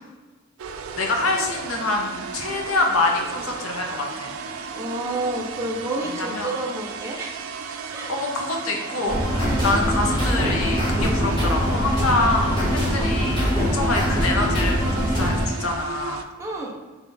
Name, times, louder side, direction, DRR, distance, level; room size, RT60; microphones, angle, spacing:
sound 1, 0.6-16.2, right 5 dB, 85° right, 0.4 m, -35 dB
voice 1, 1.0-4.3 6.0-6.5 8.1-9.2 9.6-16.2, left 2 dB, 80° left, 1 dB, 0.8 m, -25 dB
voice 2, 4.7-7.3 7.9-8.1 9.4-9.7 12.9-13.1 16.4-16.8, right 2 dB, 15° right, -3 dB, 0.6 m, -30 dB
sound 2, 9.1-15.5, equal, 20° left, 1.1 m, -22 dB
3.4 x 3.2 x 3.8 m, 1.3 s
head